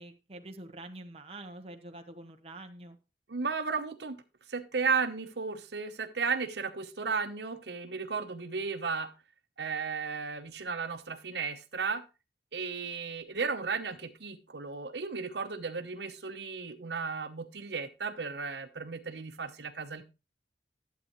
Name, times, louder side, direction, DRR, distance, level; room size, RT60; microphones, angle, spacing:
voice 1, 0.0-3.0, right 1 dB, 35° right, 5 dB, 1.0 m, -46 dB
voice 2, 3.3-4.2 4.5-9.1 9.6-12.0 12.5-20.0, right 5 dB, 75° right, 9 dB, 0.9 m, -34 dB
12.0 x 8.3 x 3.0 m, 0.28 s
head